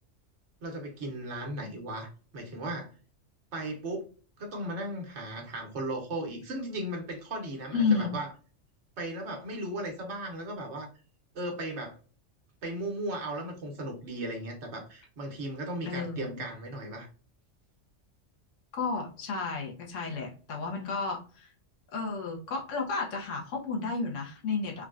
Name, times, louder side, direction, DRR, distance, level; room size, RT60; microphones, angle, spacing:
voice 1, 0.6-2.9 3.5-4.1 4.4-8.3 9.0-10.9 11.3-12.0 12.6-17.1, right 1 dB, 65° right, 1 dB, 1.2 m, -36 dB
voice 2, 7.7-8.1 15.8-16.4 18.7-21.5 21.9-24.9, left 4 dB, 75° left, 0 dB, 1.2 m, -32 dB
3.6 x 2.2 x 2.4 m, 0.38 s
omnidirectional pair, 1.3 m